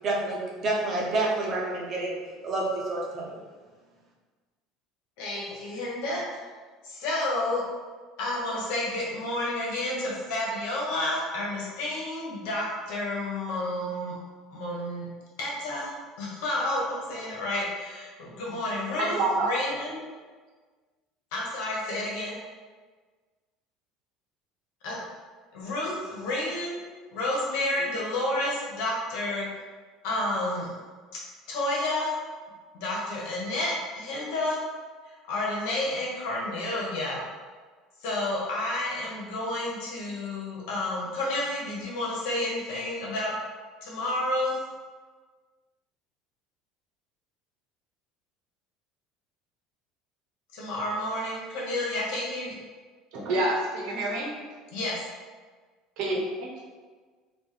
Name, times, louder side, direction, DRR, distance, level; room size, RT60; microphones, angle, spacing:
voice 1, 0.0-2.2 2.4-3.4, right 2 dB, 30° right, -3 dB, 0.9 m, -28 dB
voice 2, 5.2-6.5 6.8-7.6 8.2-14.1 14.5-15.1 15.4-20.0 21.3-22.3 24.8-25.0 25.5-26.8 27.1-29.5 30.0-30.7 31.5-32.1 32.7-34.6 35.0-37.2 38.0-43.3 43.8-44.6 50.5-52.6 54.7-55.0, left 1 dB, 80° left, -4 dB, 1.2 m, -30 dB
voice 3, 19.0-19.5 53.1-54.3 56.0-56.5, right 2 dB, 60° right, -2 dB, 0.9 m, -27 dB
4.4 x 2.6 x 3.2 m, 1.4 s
cardioid pair, 160°, 0 cm